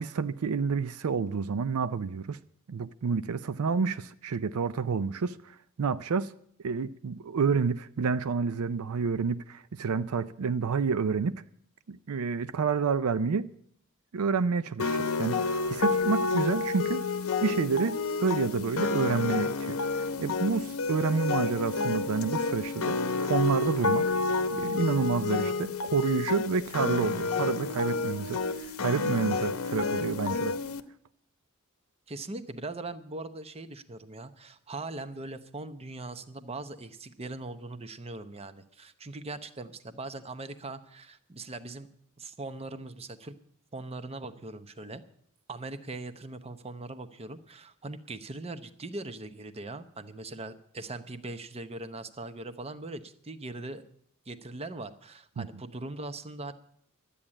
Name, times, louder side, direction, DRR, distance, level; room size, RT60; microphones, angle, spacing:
voice 1, 0.0-2.4 2.7-6.3 6.6-11.4 11.9-13.5 14.1-15.4 15.7-17.0 17.4-24.1 24.5-30.6 55.4-55.5, right 5 dB, 80° right, 0.5 m, -29 dB
sound 1, 14.8-30.8, left 4 dB, 70° left, 0.8 m, -29 dB
Wind instrument woodwind instrument, 21.0-25.7, right 3 dB, ahead, 1.2 m, -46 dB
voice 2, 32.1-43.3 43.7-45.0 45.5-53.8 54.3-56.5, right 2 dB, 30° right, 0.8 m, -40 dB
12.5 x 8.6 x 8.8 m
head